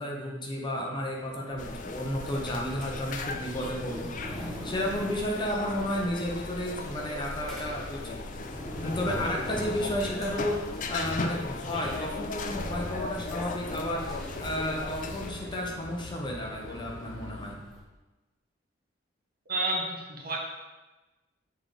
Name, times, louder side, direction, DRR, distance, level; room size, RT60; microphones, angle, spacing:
voice 1, 0.0-8.2 8.8-14.0 14.4-17.6, equal, 25° left, -1 dB, 0.8 m, -32 dB
sound 1, 1.2-17.8, equal, ahead, 1.1 m, -43 dB
sound 2, 1.6-15.3, left 3 dB, 40° left, 0.5 m, -37 dB
sound 3, 12.5-17.6, left 2 dB, 85° left, 0.6 m, -45 dB
voice 2, 19.5-20.4, right 2 dB, 50° right, -1 dB, 1.3 m, -30 dB
7.0 x 3.8 x 4.9 m, 1.1 s
head